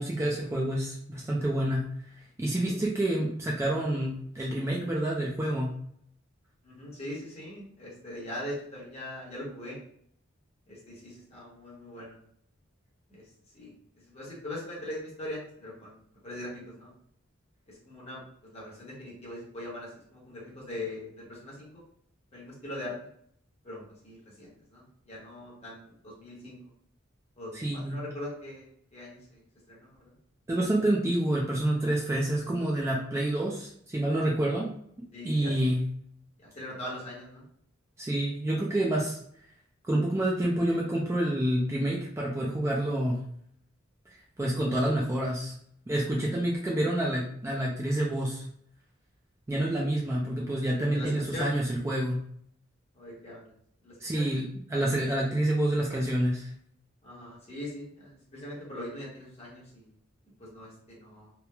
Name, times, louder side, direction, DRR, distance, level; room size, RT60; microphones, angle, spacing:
voice 1, 0.0-1.8 2.2-5.7 27.5-28.0 30.5-34.7 35.2-35.8 38.0-39.2 39.8-43.2 44.4-45.5 45.9-48.4 49.5-52.2 54.0-56.5, right 1 dB, 15° right, -3 dB, 0.3 m, -28 dB
voice 2, 6.6-9.8 10.7-12.2 13.1-13.2 13.5-13.7 14.1-15.9 16.2-16.9 17.7-21.7 22.3-22.9 23.6-26.6 27.4-28.7 28.9-29.4 29.7-30.1 35.1-35.7 36.4-37.4 50.9-51.6 52.9-53.5 53.8-54.3 57.0-59.9 60.4-61.3, left 1 dB, 30° left, -5 dB, 0.9 m, -41 dB
3.0 x 2.0 x 2.2 m, 0.66 s
head